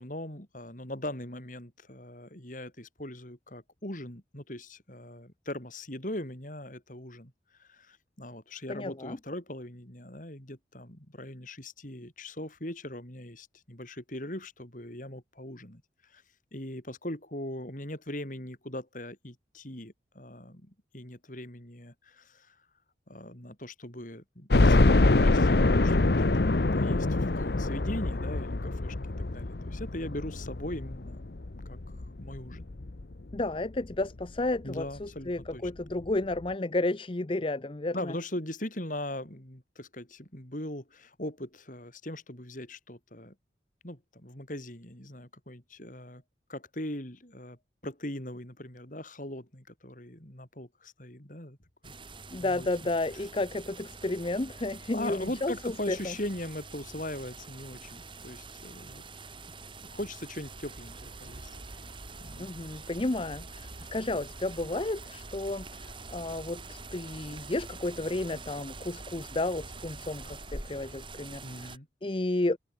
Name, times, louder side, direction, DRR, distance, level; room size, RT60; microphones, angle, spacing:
voice 1, 0.0-7.3 7.6-15.8 16.1-16.2 16.5-22.6 23.1-26.3 26.7-31.2 31.7-31.8 32.2-32.7 34.6-35.6 37.9-43.3 43.8-46.2 46.5-47.6 47.8-51.6 51.8-51.9 52.4-52.7 54.9-59.0 59.5-61.5 62.2-62.6 71.4-71.9, left 1 dB, 45° left, 5.4 m, -40 dB
voice 2, 8.7-9.2 33.3-38.1 52.3-56.1 62.4-72.6, left 2 dB, 30° left, 0.7 m, -32 dB
sound 1, 24.5-33.4 33.9-34.0 34.4-34.5 35.7-35.8 36.0-36.1, left 2 dB, 65° left, 0.9 m, -25 dB
sound 2, 51.8-71.8, right 3 dB, 30° right, 7.8 m, -46 dB
sound 3, 60.4-70.9, right 1 dB, 75° right, 2.1 m, -50 dB
head